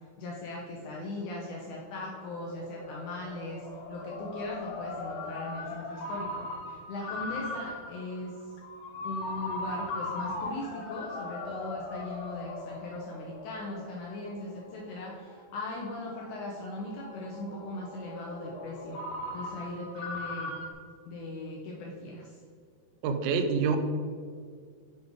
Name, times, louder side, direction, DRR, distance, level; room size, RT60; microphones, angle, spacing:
voice 1, 0.2-8.4 9.0-19.0 19.3-20.5 21.0-22.3, left 2 dB, 90° left, -2 dB, 1.7 m, -39 dB
Ringtone, 1.0-20.7, left 2 dB, 70° left, 2.7 m, -40 dB
voice 2, 23.0-23.8, right 5 dB, 80° right, 7 dB, 2.3 m, -26 dB
7.5 x 5.2 x 3.6 m, 2.1 s
omnidirectional pair, 4.5 m